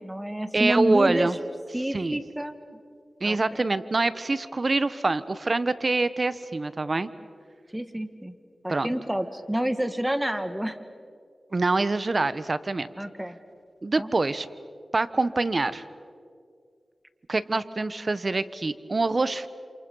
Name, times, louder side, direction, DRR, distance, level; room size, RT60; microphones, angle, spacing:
voice 1, 0.0-1.3 1.7-2.6 3.2-3.6 7.7-8.3 8.6-10.8 13.0-13.4 14.0-14.1, right 1 dB, 10° right, 9 dB, 2.0 m, -28 dB
voice 2, 0.5-1.4 1.9-2.2 3.2-7.1 8.7-8.9 11.5-12.9 13.8-14.5 14.9-15.8 17.3-19.5, right 3 dB, 50° right, 14 dB, 1.1 m, -25 dB
28.0 x 28.0 x 5.6 m, 2.2 s
cardioid pair, 45°, 0 cm